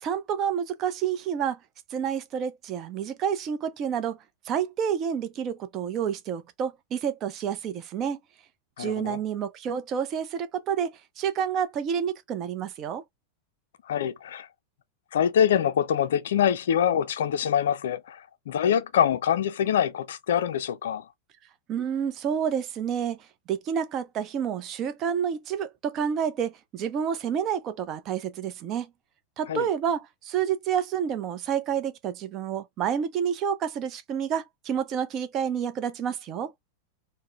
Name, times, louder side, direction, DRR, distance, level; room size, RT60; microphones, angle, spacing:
voice 1, 0.0-1.6 1.9-4.2 4.5-8.2 8.8-13.0 21.7-23.2 23.5-28.9 29.4-36.5, right 8 dB, 35° right, 0.5 m, -29 dB
voice 2, 8.8-9.2 13.9-14.5 15.1-21.1 29.5-29.7, left 9 dB, 60° left, 0.3 m, -25 dB
3.6 x 2.1 x 2.3 m
figure-of-eight pair, 90°, 0 cm